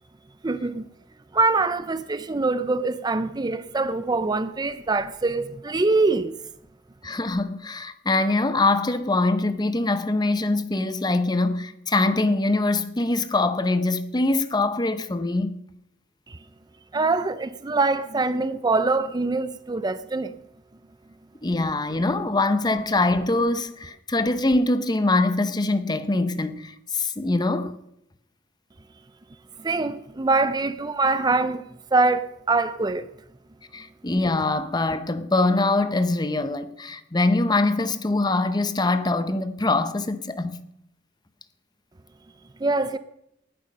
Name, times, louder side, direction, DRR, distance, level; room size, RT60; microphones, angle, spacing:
voice 1, 0.4-0.8 1.3-6.3 16.3-16.4 16.9-20.4 29.6-31.6 31.9-33.1 42.6-43.0, right 3 dB, 20° right, 0.5 m, -24 dB
voice 2, 7.0-15.6 21.4-27.8 33.7-40.6, left 2 dB, 20° left, 0.8 m, -23 dB
19.0 x 11.5 x 5.3 m
head